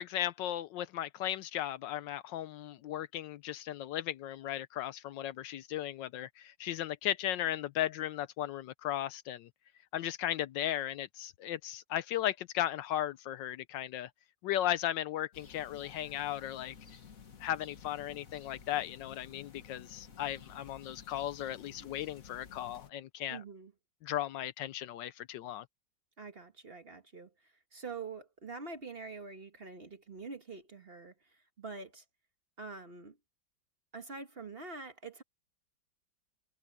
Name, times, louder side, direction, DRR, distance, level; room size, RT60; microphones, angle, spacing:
voice 1, 0.0-9.5 9.9-14.1 14.4-16.7 17.4-23.4 24.0-25.6, left 12 dB, 75° left, 1.2 m, -36 dB
sound 1, 15.3-22.9, left 6 dB, 45° left, 1.7 m, -53 dB
voice 2, 23.3-23.7 26.2-27.3 27.7-31.1 31.6-32.0 32.6-33.2 33.9-35.2, right 4 dB, 35° right, 1.4 m, -45 dB
omnidirectional pair, 2.1 m